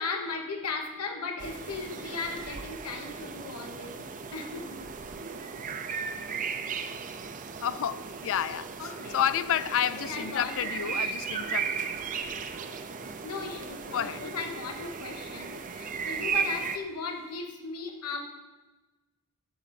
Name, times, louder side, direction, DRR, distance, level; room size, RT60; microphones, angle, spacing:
voice 1, 0.0-4.8 8.8-9.2 9.9-11.5 13.2-18.2, left 4 dB, 90° left, 1.2 m, -37 dB
sound 1, 1.4-16.8, right 6 dB, 35° right, 0.5 m, -36 dB
sound 2, 1.5-3.0 4.4-6.1 6.7-6.8 7.2-8.3 8.6-8.7 11.5-15.4 15.6-17.4, right 2 dB, 80° right, 1.8 m, -54 dB
voice 2, 7.6-11.8 13.9-14.2, left 9 dB, 60° left, 0.4 m, -30 dB
11.5 x 3.9 x 7.5 m
head